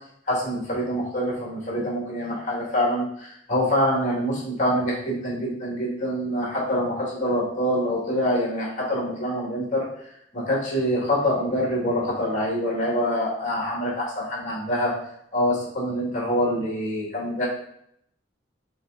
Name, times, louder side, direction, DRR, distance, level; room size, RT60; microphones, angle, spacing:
voice 1, 0.3-9.9 10.3-14.9 15.3-17.4, equal, 45° left, -5 dB, 1.8 m, -25 dB
5.9 x 3.2 x 2.6 m, 0.73 s
head